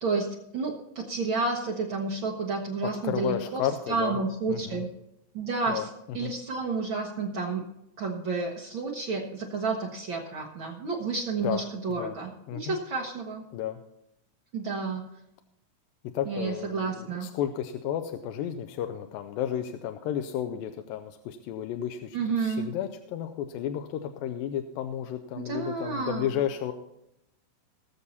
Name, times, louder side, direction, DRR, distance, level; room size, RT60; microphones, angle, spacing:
voice 1, 0.0-4.9 5.3-5.9 6.1-7.6 8.0-13.4 14.5-15.0 16.3-17.3 22.1-22.7 25.4-26.3, right 4 dB, 85° right, -1 dB, 1.1 m, -30 dB
voice 2, 3.0-4.2 4.5-4.8 5.7-6.3 11.4-11.6 11.9-12.2 12.5-12.8 13.5-13.8 16.1-26.7, left 10 dB, 85° left, 7 dB, 2.4 m, -32 dB
20.0 x 7.1 x 4.1 m, 0.84 s
omnidirectional pair, 4.1 m